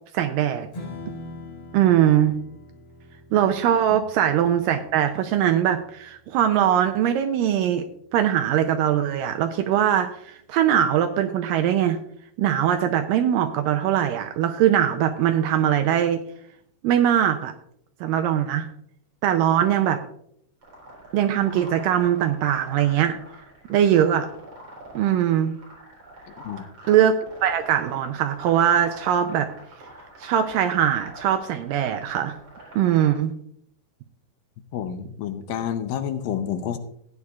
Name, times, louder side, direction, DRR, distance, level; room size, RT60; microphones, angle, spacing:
voice 1, 0.1-0.7 1.7-2.4 3.3-7.8 8.1-12.0 12.4-16.2 16.8-17.5 18.0-18.7 19.2-20.0 21.1-23.2 23.7-24.3 25.0-25.5 26.9-29.5 30.2-32.4 32.7-33.3, right 10 dB, 80° right, 7 dB, 2.0 m, -21 dB
Strum, 0.7-7.0, left 2 dB, 40° left, 6.1 m, -43 dB
sound 1, 20.6-33.1, right 1 dB, 40° right, 4.8 m, -44 dB
voice 2, 34.7-36.8, left 9 dB, 80° left, 9 dB, 2.3 m, -29 dB
16.0 x 9.6 x 2.4 m, 0.69 s
omnidirectional pair, 4.4 m